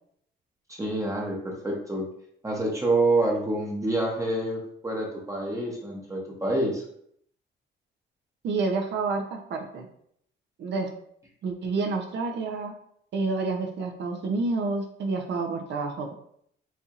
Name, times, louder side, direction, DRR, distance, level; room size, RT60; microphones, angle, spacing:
voice 1, 0.7-2.1 2.4-6.8, right 2 dB, 15° right, -1 dB, 0.8 m, -27 dB
voice 2, 8.4-9.9 10.6-10.9 11.4-12.7 13.1-16.1, right 3 dB, 60° right, 4 dB, 0.6 m, -29 dB
4.3 x 2.8 x 2.4 m, 0.68 s
cardioid pair, 90°, 20 cm